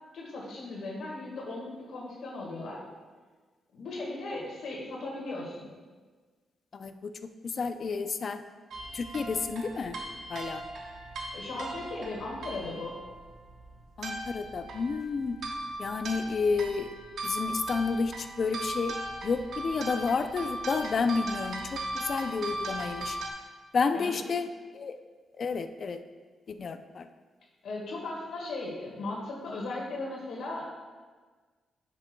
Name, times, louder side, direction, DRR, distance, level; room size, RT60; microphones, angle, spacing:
voice 1, 0.1-2.8 3.7-5.7 11.3-12.9 23.9-24.2 27.6-30.7, left 2 dB, 75° left, -3 dB, 1.6 m, -37 dB
voice 2, 6.7-7.1 7.4-8.4 8.9-10.0 10.3-10.6 14.0-15.4 15.8-17.0 17.2-19.0 19.2-23.2 23.7-24.5 24.7-25.0 25.4-26.0 26.5-27.1, left 4 dB, 45° left, 9 dB, 0.4 m, -30 dB
sound 1, 8.7-23.3, right 1 dB, 70° right, 0.9 m, -38 dB
10.5 x 6.0 x 2.2 m, 1.4 s
cardioid pair, 125°, 0 cm